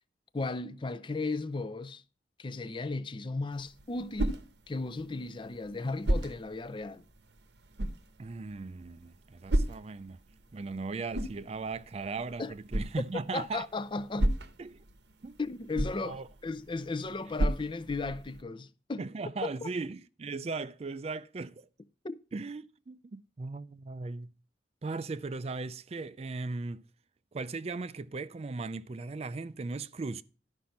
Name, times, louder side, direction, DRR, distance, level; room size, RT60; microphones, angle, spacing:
voice 1, 0.3-2.0 2.4-4.4 4.7-7.0 12.4-12.5 13.3-14.3 15.4-19.1 19.4-19.7 22.0-22.2, left 3 dB, 30° left, 0.5 m, -35 dB
sound 1, 3.5-18.4, right 1 dB, 75° right, 0.9 m, -35 dB
voice 2, 8.2-10.2 10.5-13.7 14.6-14.8 15.2-15.4 16.0-16.3 19.0-21.7 22.3-24.3 24.8-26.8 27.3-30.2, right 3 dB, 35° right, 0.4 m, -38 dB
11.5 x 5.3 x 5.7 m
head